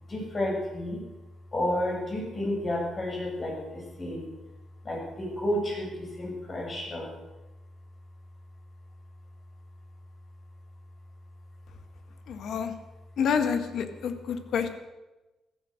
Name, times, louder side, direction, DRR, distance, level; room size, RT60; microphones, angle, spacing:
voice 1, 0.1-1.0 1.5-4.3 4.8-7.1, left 1 dB, 35° left, -2 dB, 7.3 m, -31 dB
voice 2, 12.3-12.7 13.2-14.7, left 6 dB, 70° left, 8 dB, 1.7 m, -28 dB
15.0 x 13.0 x 6.6 m, 1.1 s
cardioid pair, 90°, 0 cm